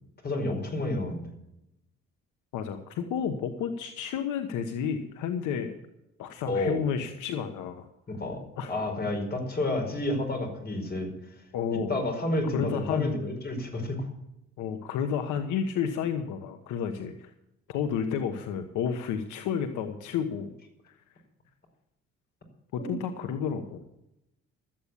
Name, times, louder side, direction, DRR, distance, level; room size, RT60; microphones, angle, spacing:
voice 1, 0.2-1.3 6.4-6.9 8.1-8.4 8.7-11.1 11.7-14.0 22.8-23.0, left 1 dB, 35° left, 3 dB, 5.2 m, -30 dB
voice 2, 2.5-5.8 6.2-7.9 8.6-8.8 11.5-12.0 12.5-13.1 14.6-17.3 17.7-20.5 20.8-20.9 22.7-23.8, left 7 dB, 85° left, 7 dB, 1.2 m, -31 dB
13.5 x 8.7 x 8.5 m, 0.85 s
cardioid pair, 85°, 30 cm